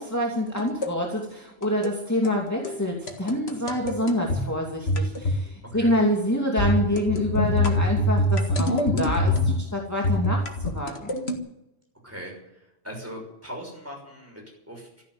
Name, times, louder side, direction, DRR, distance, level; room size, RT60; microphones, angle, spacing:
voice 1, 0.0-11.1, left 1 dB, 15° left, -2 dB, 2.6 m, -26 dB
sound 1, 0.6-0.9 1.6-2.0 2.2-2.4 2.6-2.8 3.1-4.4 4.9-5.4 5.7-6.0 6.6-9.7 10.0-11.4, left 1 dB, 90° left, 2.1 m, -24 dB
voice 2, 12.0-14.9, equal, 15° right, 0 dB, 6.2 m, -40 dB
14.5 x 10.5 x 9.6 m, 0.89 s
omnidirectional pair, 1.0 m